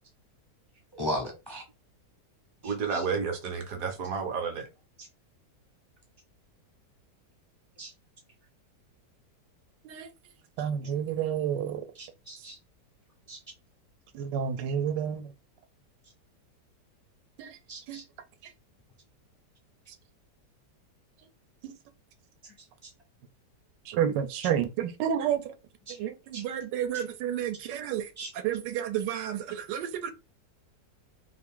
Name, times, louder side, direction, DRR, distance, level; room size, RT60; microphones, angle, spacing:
voice 1, 1.0-1.6 2.6-3.1 5.0-5.1 7.8-7.9 11.9-12.6 13.3-13.4 17.7-18.0 25.9-26.0 26.3-26.4 26.9-27.0 28.2-28.3, equal, 30° left, 0.4 m, -37 dB
voice 2, 2.6-4.7, right 5 dB, 65° right, 1.0 m, -31 dB
voice 3, 10.6-11.8 14.1-15.2 17.4-17.5 17.9-18.0 21.6-21.7 23.9-25.4 26.0-28.0 28.4-30.1, right 9 dB, 85° right, 1.2 m, -30 dB
3.0 x 2.5 x 3.6 m
omnidirectional pair, 1.9 m